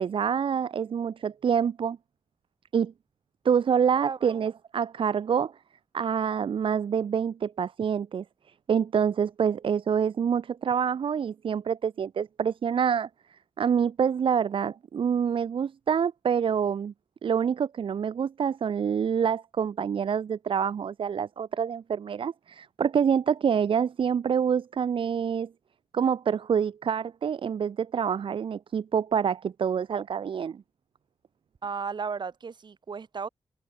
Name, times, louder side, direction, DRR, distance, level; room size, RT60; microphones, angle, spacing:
voice 1, 0.0-2.0 2.7-2.9 3.4-5.5 5.9-8.2 8.7-16.9 17.2-25.5 25.9-30.6, right 7 dB, 70° right, 1.3 m, -26 dB
voice 2, 4.0-4.3 31.6-33.3, right 5 dB, 55° right, 5.6 m, -34 dB
cardioid pair, 90°, 9 cm